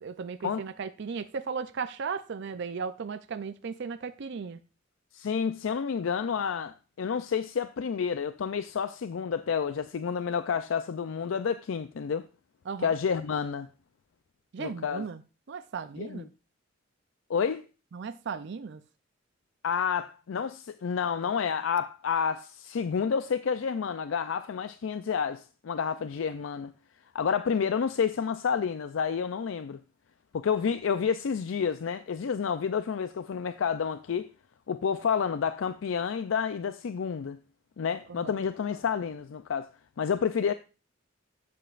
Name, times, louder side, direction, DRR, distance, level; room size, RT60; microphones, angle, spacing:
voice 1, 0.0-4.6 12.7-12.9 14.5-15.2 15.5-16.3 17.9-18.8 38.2-38.4, right 5 dB, 60° right, 0.5 m, -36 dB
voice 2, 5.1-12.3 12.8-13.7 14.6-15.0 16.0-16.2 17.3-17.6 19.6-26.7 27.1-29.8 30.3-34.3 34.7-37.4 37.8-39.7 40.0-40.5, left 6 dB, 80° left, 0.4 m, -29 dB
11.5 x 7.7 x 2.5 m
head